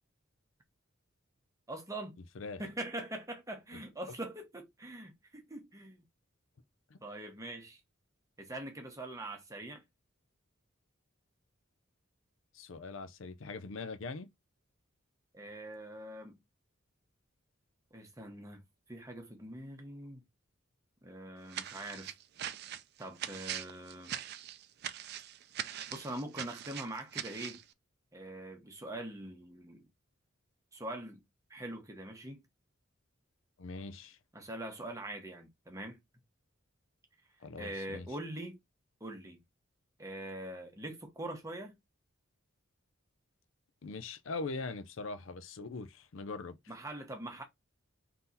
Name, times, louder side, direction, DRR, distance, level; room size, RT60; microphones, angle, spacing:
voice 1, 1.7-2.2 2.6-6.0 7.0-7.8 8.4-9.8 15.3-16.4 17.9-18.6 18.9-20.2 21.0-22.1 23.0-24.1 25.9-27.6 28.1-29.8 30.7-31.2 31.5-32.4 34.3-36.0 37.6-38.6 39.0-39.4 40.0-41.8 46.7-47.4, right 1 dB, 15° right, 1.0 m, -43 dB
voice 2, 12.5-14.3 33.6-34.2 37.4-38.1 43.8-46.6, left 3 dB, 70° left, 0.5 m, -41 dB
sound 1, 21.5-27.6, right 11 dB, 55° right, 0.4 m, -42 dB
3.8 x 2.8 x 4.0 m
head